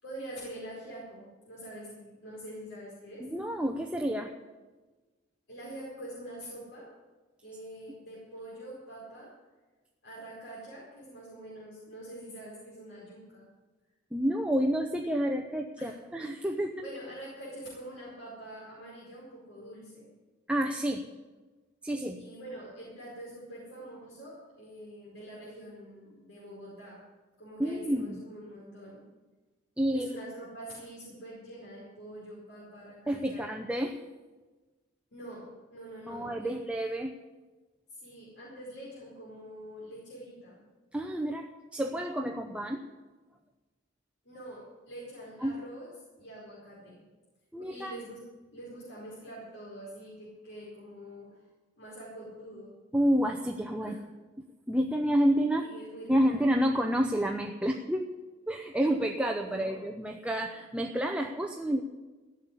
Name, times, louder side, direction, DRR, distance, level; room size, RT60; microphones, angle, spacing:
voice 1, 0.0-3.3 5.5-6.9 7.4-9.3 10.0-13.5 15.8-16.0 16.8-20.1 22.2-27.0 27.4-29.0 29.9-33.5 35.1-36.5 37.9-40.6 44.2-45.9 46.2-47.0 47.6-48.3 48.5-51.4 51.8-52.7 53.8-54.0 55.6-56.5 59.4-59.7, right 1 dB, 75° left, -6 dB, 4.8 m, -45 dB
voice 2, 3.2-4.3 14.1-16.8 20.5-21.1 21.8-22.2 27.6-28.2 29.8-30.1 33.1-34.0 36.1-37.2 40.9-42.8 45.4-45.6 47.5-47.9 52.9-54.0 54.7-55.7 56.1-58.1 58.5-61.8, equal, 5° right, 2 dB, 0.7 m, -29 dB
15.0 x 7.4 x 10.0 m, 1.2 s
head